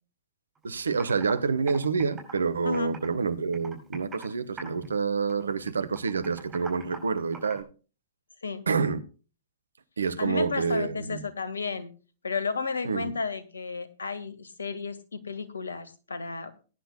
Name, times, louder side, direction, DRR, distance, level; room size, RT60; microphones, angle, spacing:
Computer keyboard, 0.5-0.6 1.0-1.3 1.7-3.2 3.5-4.3 4.6-5.0 5.3-7.6, right 4 dB, 20° right, 5.3 m, -43 dB
voice 1, 0.6-7.6 8.7-9.0 10.0-11.2 12.8-13.1, right 5 dB, 75° right, 1.1 m, -28 dB
voice 2, 10.2-11.9 12.2-16.6, left 4 dB, 75° left, 1.6 m, -33 dB
21.0 x 10.0 x 2.2 m
figure-of-eight pair, 105°, 0 cm